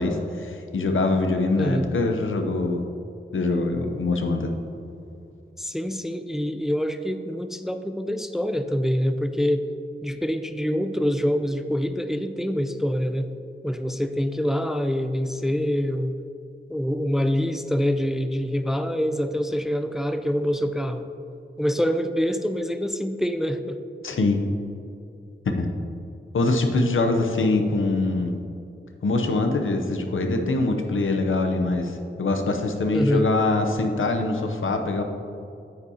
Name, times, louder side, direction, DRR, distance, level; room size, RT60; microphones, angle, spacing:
voice 1, 0.0-2.8 3.3-4.5 24.0-24.4 25.5-25.7 26.3-28.3 29.0-35.0, left 2 dB, 85° left, 5 dB, 0.7 m, -23 dB
voice 2, 1.6-1.9 5.6-9.7 10.0-13.3 13.6-16.2 16.7-21.1 21.6-23.8 32.9-33.3, equal, ahead, 8 dB, 0.4 m, -25 dB
9.4 x 6.9 x 2.8 m, 2.6 s
wide cardioid pair, 65°, 20 cm